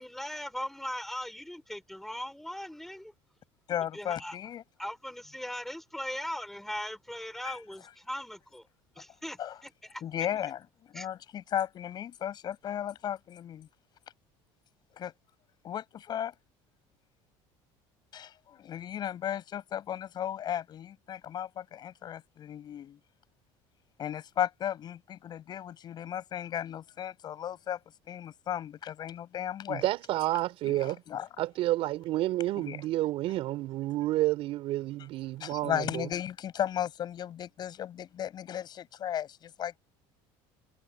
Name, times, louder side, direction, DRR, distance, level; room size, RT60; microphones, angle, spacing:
voice 1, 0.0-3.1 3.9-4.4 4.8-8.6 9.0-10.0 10.9-11.1, left 1 dB, 5° left, 3.5 m, -39 dB
voice 2, 3.7-4.6 7.4-7.6 9.4-9.6 10.0-10.6 10.9-13.7 14.9-15.1 15.6-16.3 18.1-23.0 24.0-27.8 28.1-29.8 30.6-31.3 32.6-32.8 35.4-39.8, left 10 dB, 40° left, 7.2 m, -35 dB
voice 3, 29.7-31.0 31.4-36.1, right 16 dB, 55° right, 4.6 m, -30 dB
cardioid pair, 140°, 11 cm